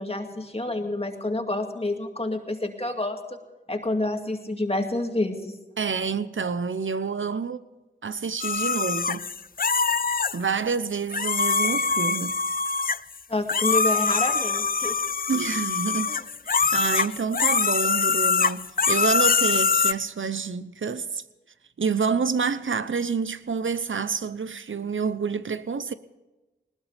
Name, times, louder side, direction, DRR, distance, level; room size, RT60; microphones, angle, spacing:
voice 1, 0.0-3.2 3.7-5.5 11.6-11.8 13.3-15.0 16.1-16.2 16.6-16.8, left 2 dB, 30° left, 2.3 m, -28 dB
voice 2, 5.8-7.6 8.0-9.3 10.3-12.4 15.3-16.1 16.5-21.2 21.8-25.9, right 5 dB, 85° right, 0.8 m, -28 dB
sound 1, 8.4-10.4 11.1-13.2 13.5-19.9, left 5 dB, 50° left, 0.5 m, -24 dB
20.0 x 20.0 x 3.5 m
wide cardioid pair, 60°, 20 cm